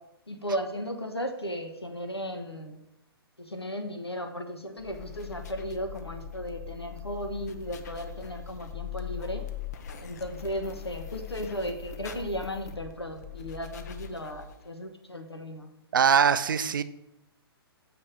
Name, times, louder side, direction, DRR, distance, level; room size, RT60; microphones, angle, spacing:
voice 1, 0.3-2.8 3.4-9.5 10.0-15.7, equal, 85° left, 6 dB, 1.1 m, -35 dB
sound 1, 4.8-14.7, left 9 dB, 40° left, 0.6 m, -41 dB
voice 2, 15.9-16.8, right 7 dB, 55° right, 12 dB, 0.5 m, -22 dB
7.4 x 3.5 x 6.0 m, 0.88 s
figure-of-eight pair, 125°, 13 cm